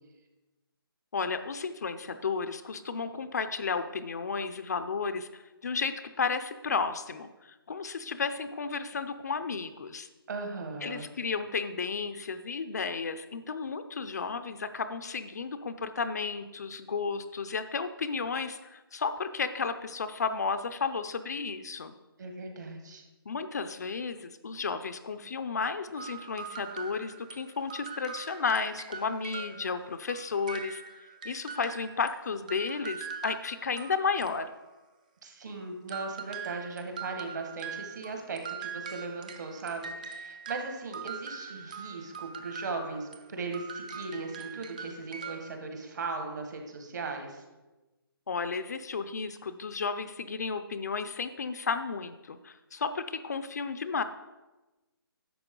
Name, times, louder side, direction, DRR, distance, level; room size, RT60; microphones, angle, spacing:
voice 1, 1.1-10.1 10.8-21.9 23.3-30.8 31.2-34.5 48.3-54.0, left 5 dB, 45° left, 10 dB, 0.5 m, -33 dB
voice 2, 10.3-11.1 22.2-23.0 35.2-47.4, right 3 dB, 50° right, 4 dB, 1.6 m, -38 dB
sound 1, 26.0-32.1 32.5-34.8 35.9-43.2 43.5-45.6, right 6 dB, 20° right, 0.4 m, -42 dB
11.0 x 7.3 x 3.7 m, 1.1 s
hypercardioid pair, 170°, 13 cm